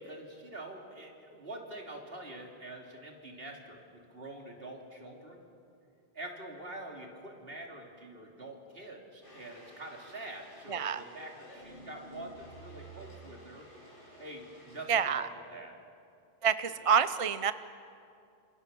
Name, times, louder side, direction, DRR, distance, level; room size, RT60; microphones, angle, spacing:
voice 1, 0.0-5.4 6.2-13.7 14.2-15.7 16.8-17.0, right 1 dB, 65° right, 1 dB, 3.3 m, -46 dB
sound 1, 9.2-14.9, equal, 60° left, 5.9 m, -55 dB
voice 2, 10.7-11.0 14.9-15.2 16.4-17.5, right 7 dB, 40° right, 13 dB, 0.6 m, -27 dB
sound 2, 11.5-13.3, right 3 dB, 90° left, 2.6 m, -51 dB
27.0 x 26.5 x 7.0 m, 2.5 s
omnidirectional pair, 1.0 m